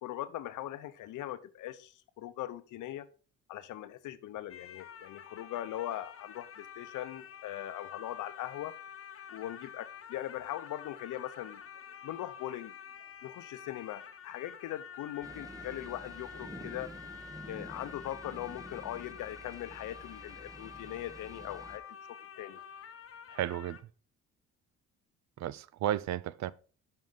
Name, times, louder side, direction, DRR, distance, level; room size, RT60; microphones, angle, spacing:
voice 1, 0.0-3.1 3.5-8.7 9.3-11.6 12.0-12.7 13.2-16.9 17.5-21.8 22.4-22.6, left 13 dB, 80° left, 0.8 m, -40 dB
sound 1, 4.5-23.8, left 8 dB, 45° left, 1.0 m, -48 dB
sound 2, 15.2-21.8, right 1 dB, 10° right, 0.9 m, -49 dB
voice 2, 23.3-23.9 25.4-26.5, right 11 dB, 65° right, 0.5 m, -33 dB
7.4 x 5.4 x 3.8 m
cardioid pair, 90°, 30 cm